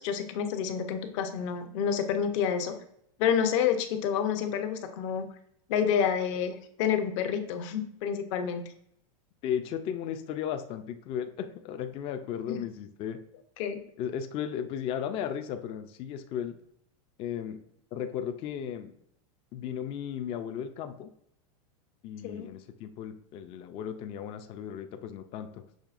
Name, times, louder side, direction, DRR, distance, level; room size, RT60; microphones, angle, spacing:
voice 1, 0.0-2.8 3.2-5.3 5.7-8.6 12.5-12.6 13.6-13.8 22.2-22.5, left 8 dB, 55° left, 7 dB, 0.7 m, -29 dB
voice 2, 9.4-13.2 14.0-16.6 17.2-17.6 17.9-18.9 19.5-21.1 22.0-25.6, left 9 dB, 30° left, 7 dB, 0.3 m, -35 dB
6.3 x 3.2 x 2.4 m, 0.71 s
supercardioid pair, 145°, 18 cm